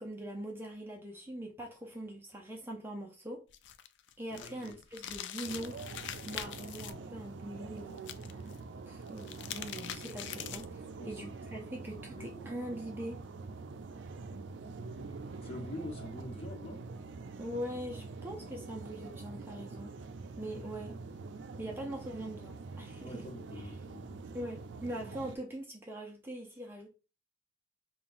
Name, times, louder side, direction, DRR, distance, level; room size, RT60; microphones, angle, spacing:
voice 1, 0.0-3.5 4.2-5.9 6.2-8.2 8.9-13.2 17.4-19.9 20.4-21.0 21.6-23.2 23.6-23.7 24.3-26.9, right 1 dB, 15° right, 0.6 m, -42 dB
sound 1, 3.5-6.9 8.0-8.6 9.1-10.8, left 10 dB, 85° left, 0.4 m, -43 dB
voice 2, 4.3-4.7 11.0-11.3 12.1-12.5 15.4-16.8 23.0-24.2, left 1 dB, 30° left, 1.0 m, -45 dB
sound 2, 5.4-25.4, right 4 dB, 90° right, 0.4 m, -45 dB
5.5 x 2.3 x 2.5 m
head